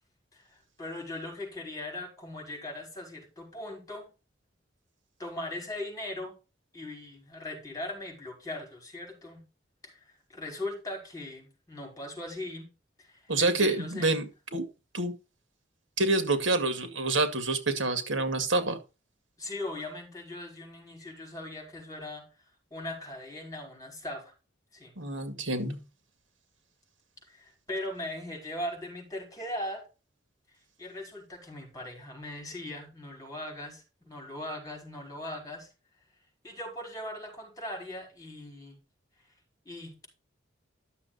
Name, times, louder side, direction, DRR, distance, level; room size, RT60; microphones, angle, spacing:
voice 1, 0.8-4.1 5.2-6.3 6.7-9.4 9.8-10.0 10.3-12.7 13.0-14.2 19.4-22.3 22.7-24.3 24.7-24.9 27.3-29.8 30.8-35.7 36.4-38.8 39.7-40.1, left 1 dB, 20° left, 1 dB, 5.2 m, -39 dB
voice 2, 13.3-14.6 14.9-15.1 16.0-18.8 25.0-25.8, right 2 dB, 80° right, 8 dB, 2.0 m, -27 dB
11.5 x 6.8 x 4.0 m, 0.30 s
head